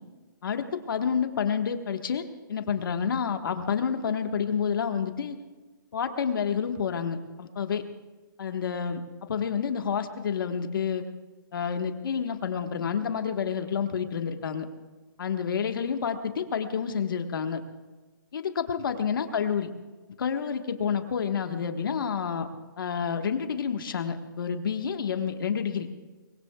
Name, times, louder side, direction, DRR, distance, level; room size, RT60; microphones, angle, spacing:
voice 1, 0.4-5.4 5.9-7.8 8.4-11.0 11.5-14.7 15.2-17.6 18.3-19.7 20.2-22.5 22.8-25.9, left 7 dB, 70° left, 6 dB, 1.5 m, -29 dB
24.0 x 21.0 x 2.4 m, 1.3 s
hypercardioid pair, 155°, 12 cm